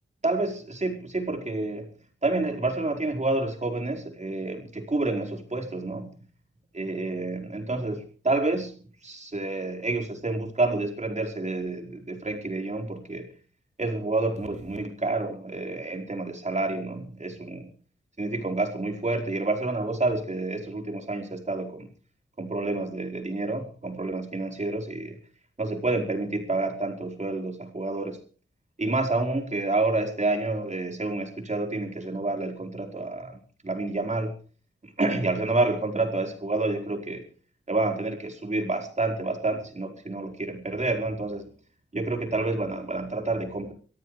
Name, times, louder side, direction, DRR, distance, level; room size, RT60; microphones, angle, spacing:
voice 1, 0.2-1.9 2.2-6.1 6.7-8.8 9.0-13.3 13.8-17.7 18.2-21.9 22.4-25.2 25.6-28.2 28.8-33.4 33.6-34.3 34.8-37.3 37.7-41.5 41.9-43.7, right 2 dB, 35° right, 3 dB, 4.7 m, -29 dB
24.0 x 14.0 x 3.4 m, 0.39 s
cardioid pair, 60°, 20 cm